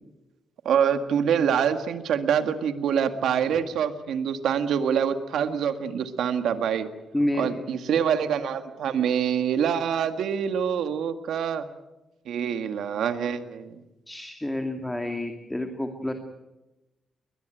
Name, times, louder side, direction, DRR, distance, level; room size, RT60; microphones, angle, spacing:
voice 1, 0.7-6.9 7.4-11.7 12.3-13.8, right 8 dB, 85° right, 8 dB, 1.9 m, -25 dB
voice 2, 7.1-7.6 14.1-16.1, left 1 dB, 10° left, 5 dB, 2.3 m, -29 dB
21.5 x 21.0 x 9.2 m, 1.0 s
cardioid pair, 100°, 0 cm